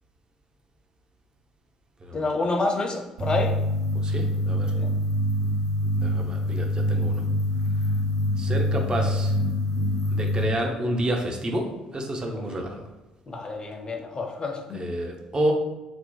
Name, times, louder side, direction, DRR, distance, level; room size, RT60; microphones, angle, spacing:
voice 1, 2.1-3.5 4.7-4.9 13.3-14.8, left 3 dB, 30° left, 3 dB, 0.5 m, -28 dB
sound 1, 3.2-10.4, equal, 70° right, 1.2 m, -25 dB
voice 2, 3.9-4.7 5.4-5.5 5.8-7.3 8.4-9.4 10.1-12.9 14.7-15.5, right 1 dB, 30° right, 2 dB, 0.6 m, -29 dB
2.8 x 2.1 x 3.8 m, 1.0 s
figure-of-eight pair, 50°, 3 cm